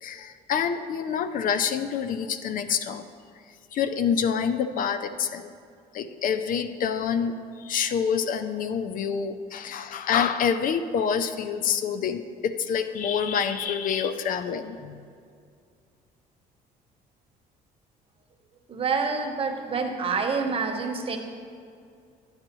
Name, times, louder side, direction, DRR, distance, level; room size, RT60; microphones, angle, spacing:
voice 1, 0.0-3.0 3.7-5.5 5.9-15.0, left 7 dB, 55° left, 11 dB, 0.5 m, -27 dB
voice 2, 18.7-21.2, right 5 dB, 35° right, 4 dB, 1.1 m, -27 dB
12.5 x 8.8 x 3.0 m, 2.3 s
cardioid pair, 110°, 17 cm